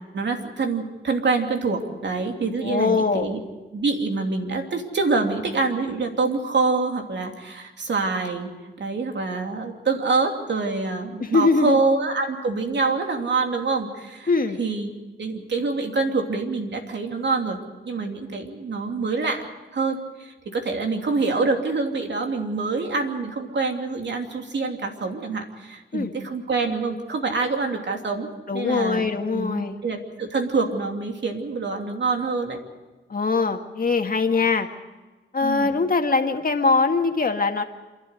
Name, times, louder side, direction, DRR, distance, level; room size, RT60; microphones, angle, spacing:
voice 1, 0.1-3.4 3.7-8.5 8.8-14.3 14.6-14.9 15.2-17.6 17.8-19.5 19.7-32.6 35.4-35.7, right 4 dB, 65° right, 3 dB, 2.9 m, -26 dB
voice 2, 2.6-3.3 11.2-11.8 14.3-14.6 25.9-26.1 28.5-29.7 33.1-34.7 35.3-37.6, left 4 dB, 45° left, 5 dB, 1.9 m, -22 dB
27.5 x 12.5 x 8.2 m, 1.2 s
cardioid pair, 75°, 20 cm